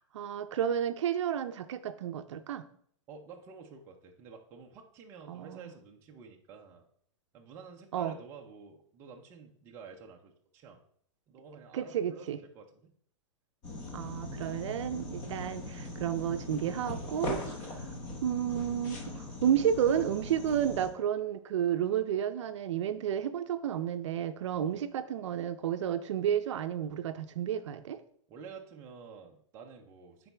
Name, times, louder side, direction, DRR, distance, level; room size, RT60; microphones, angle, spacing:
voice 1, 0.1-2.7 5.3-5.7 7.9-8.1 11.7-12.4 13.9-17.4 17.7-17.9 18.2-28.0, right 9 dB, 65° right, 10 dB, 0.5 m, -31 dB
voice 2, 3.1-6.8 7.3-10.8 11.3-12.9 24.5-24.8 28.3-30.3, right 5 dB, 15° right, 1 dB, 0.5 m, -50 dB
sound 1, 13.6-20.9, left 1 dB, 25° left, 1.0 m, -40 dB
10.5 x 4.0 x 3.4 m, 0.63 s
supercardioid pair, 175°, 17 cm